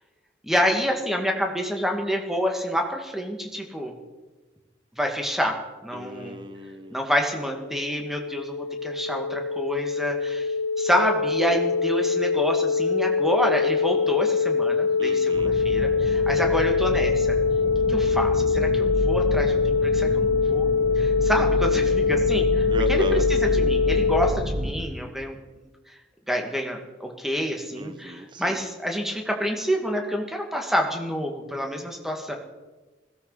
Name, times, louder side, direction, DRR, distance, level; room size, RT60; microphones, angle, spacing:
voice 1, 0.4-3.9 5.0-6.4 6.9-8.6 8.8-10.5 10.8-17.4 17.9-20.7 21.0-23.0 23.3-25.4 26.3-32.3, equal, ahead, 2 dB, 1.9 m, -28 dB
voice 2, 5.9-7.0 15.0-15.5 22.7-23.6 27.7-28.6, equal, 25° right, 11 dB, 0.8 m, -36 dB
sound 1, 7.3-24.3, left 5 dB, 70° left, 1.1 m, -23 dB
sound 2, 15.3-24.7, equal, 65° right, 6.0 m, -29 dB
20.5 x 17.0 x 4.1 m, 1.2 s
head